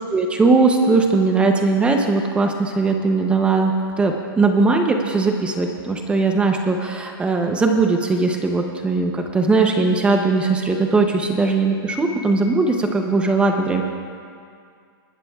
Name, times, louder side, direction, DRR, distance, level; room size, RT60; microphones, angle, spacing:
voice 1, 0.0-3.7 4.0-13.8, right 3 dB, 10° right, 3 dB, 0.6 m, -19 dB
20.5 x 13.5 x 2.3 m, 2.2 s
hypercardioid pair, 160°, 13 cm